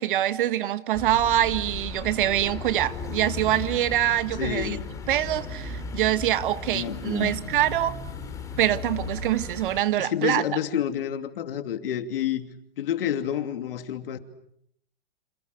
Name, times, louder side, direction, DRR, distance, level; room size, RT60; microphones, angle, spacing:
voice 1, 0.0-4.8 5.1-7.9 8.6-10.4, right 13 dB, 55° right, 1.6 m, -24 dB
sound 1, 0.9-9.8, left 4 dB, 10° left, 3.1 m, -36 dB
voice 2, 4.4-4.8 6.7-7.3 10.0-12.5 12.8-14.2, left 10 dB, 65° left, 2.8 m, -29 dB
29.0 x 28.0 x 6.7 m
hypercardioid pair, 160°, 31 cm